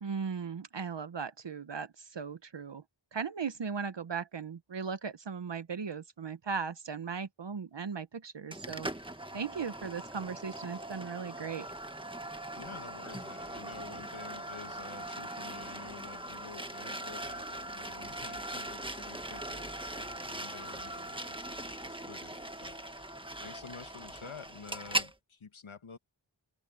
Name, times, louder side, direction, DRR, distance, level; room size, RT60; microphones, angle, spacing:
voice 1, 0.0-2.8 3.1-8.9 9.3-11.7, right 6 dB, 65° right, 1.0 m, -37 dB
sound 1, 8.5-25.1, right 1 dB, 10° right, 1.5 m, -40 dB
voice 2, 12.5-23.0 23.4-26.0, left 5 dB, 85° left, 1.6 m, -50 dB
wide cardioid pair, 50°, 47 cm